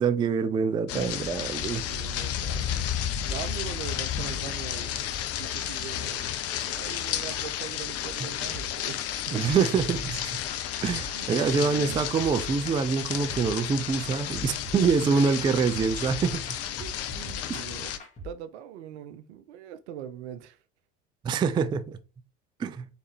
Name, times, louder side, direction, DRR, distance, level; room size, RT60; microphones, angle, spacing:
voice 1, 0.0-1.8 9.3-10.4 10.8-16.4 17.5-17.6 21.2-22.0 22.6-22.9, right 5 dB, 15° right, 0.3 m, -25 dB
sound 1, 0.9-18.0, left 10 dB, 40° left, 0.6 m, -32 dB
voice 2, 1.9-2.7 3.3-6.4 6.6-9.4 11.1-12.1 14.6-15.2 16.8-17.9 18.2-20.6, right 10 dB, 70° right, 0.6 m, -41 dB
sound 2, 8.5-18.3, left 1 dB, 20° left, 1.7 m, -43 dB
4.3 x 3.3 x 3.3 m
figure-of-eight pair, 70°, 36 cm